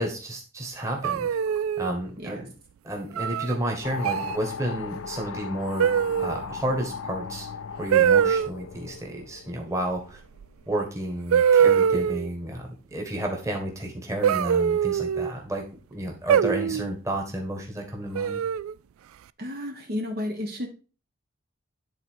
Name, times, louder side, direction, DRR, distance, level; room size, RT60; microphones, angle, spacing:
voice 1, 0.0-1.4 1.8-2.5 2.8-5.9 6.2-7.5 7.8-10.2 10.7-15.6 15.9-18.4, right 1 dB, 15° right, 1 dB, 1.5 m, -31 dB
sound 1, 1.0-1.9 3.2-3.5 4.0-4.4 5.8-6.4 7.9-8.5 10.4-10.5 11.3-12.3 14.2-15.3 16.3-16.9 18.1-18.7, right 8 dB, 85° right, 0.3 m, -22 dB
sound 2, 3.8-10.3, left 5 dB, 80° left, 0.5 m, -37 dB
voice 2, 19.4-20.7, left 1 dB, 45° right, 1 dB, 1.0 m, -32 dB
9.9 x 4.0 x 4.6 m, 0.35 s
head